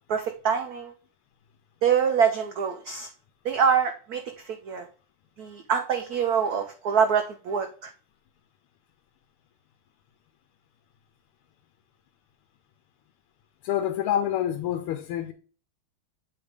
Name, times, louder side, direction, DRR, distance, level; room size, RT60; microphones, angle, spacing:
voice 1, 0.1-0.9 1.8-3.1 3.4-4.9 5.4-7.9, right 7 dB, 85° right, 0.8 m, -25 dB
voice 2, 13.6-15.3, left 10 dB, 85° left, 1.5 m, -27 dB
7.9 x 3.4 x 5.0 m
omnidirectional pair, 2.4 m